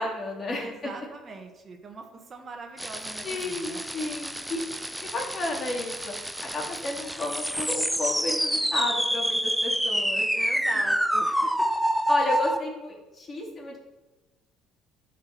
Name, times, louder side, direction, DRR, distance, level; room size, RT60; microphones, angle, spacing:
voice 1, 0.0-0.7 3.2-4.6 5.0-6.1 6.5-10.3 12.1-13.8, left 2 dB, 35° left, -1 dB, 3.1 m, -32 dB
voice 2, 0.6-3.8 10.3-11.7, right 3 dB, 40° right, 3 dB, 1.6 m, -42 dB
sound 1, 2.8-12.6, equal, ahead, 0.6 m, -28 dB
11.5 x 5.2 x 6.1 m, 1.1 s
cardioid pair, 95°, 0 cm